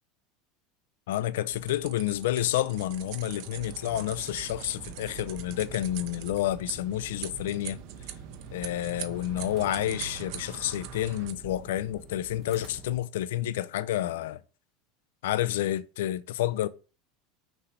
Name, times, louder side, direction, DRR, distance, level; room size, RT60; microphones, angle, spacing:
voice 1, 1.1-7.8 8.5-14.4 15.2-16.7, left 13 dB, 85° left, 0.5 m, -29 dB
sound 1, 1.5-11.3, right 10 dB, 60° right, 0.8 m, -42 dB
sound 2, 3.6-13.0, right 4 dB, 40° right, 1.0 m, -48 dB
6.1 x 3.3 x 5.5 m
supercardioid pair, 130°, 0 cm